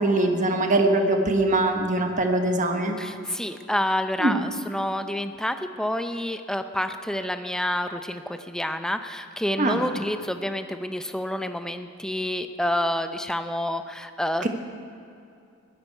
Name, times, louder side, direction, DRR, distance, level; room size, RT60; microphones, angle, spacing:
voice 1, 0.0-3.0 4.2-4.4 9.6-9.8 14.4-14.5, right 2 dB, 35° right, 4 dB, 1.3 m, -22 dB
voice 2, 3.0-14.5, left 1 dB, 5° left, 8 dB, 0.6 m, -28 dB
20.5 x 13.5 x 4.6 m, 2.6 s
head